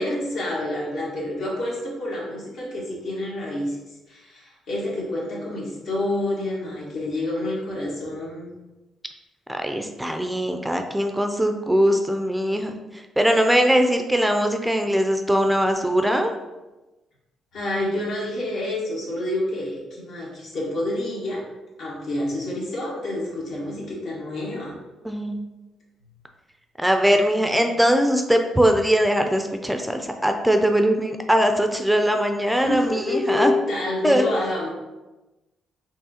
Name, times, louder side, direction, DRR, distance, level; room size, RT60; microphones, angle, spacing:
voice 1, 0.0-3.8 4.1-8.5 17.5-21.4 21.8-24.8 27.1-27.2 32.6-34.7, left 1 dB, 75° left, -5 dB, 1.5 m, -28 dB
voice 2, 9.5-16.3 25.0-25.4 26.8-33.5 34.0-34.2, equal, 5° right, 5 dB, 0.3 m, -21 dB
4.5 x 2.8 x 2.8 m, 1.1 s
cardioid pair, 90°, 0 cm